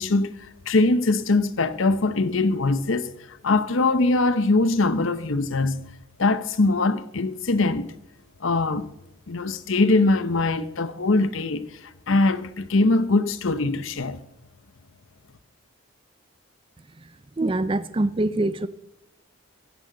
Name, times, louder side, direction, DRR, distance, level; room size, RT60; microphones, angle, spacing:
voice 1, 0.0-5.9 6.2-7.9 8.4-8.9 9.3-11.7 12.1-14.2, left 2 dB, 65° left, 0.8 m, -22 dB
voice 2, 17.4-18.7, right 2 dB, 25° right, 0.4 m, -24 dB
17.0 x 15.5 x 3.9 m
head